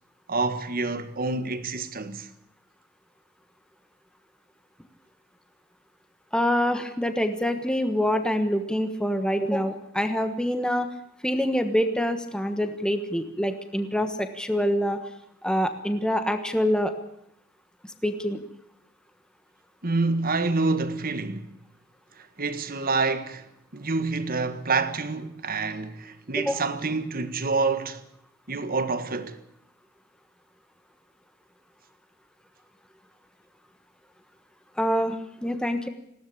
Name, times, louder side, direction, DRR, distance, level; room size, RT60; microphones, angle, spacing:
voice 1, 0.3-2.3 19.8-21.5 22.2-28.0 28.5-29.4, right 3 dB, 45° right, 1.6 m, -27 dB
voice 2, 6.3-10.9 11.2-15.0 15.4-16.9 18.0-18.4 26.4-26.7 34.8-35.2 35.4-35.9, equal, 5° left, 1.3 m, -25 dB
20.0 x 16.5 x 8.6 m
head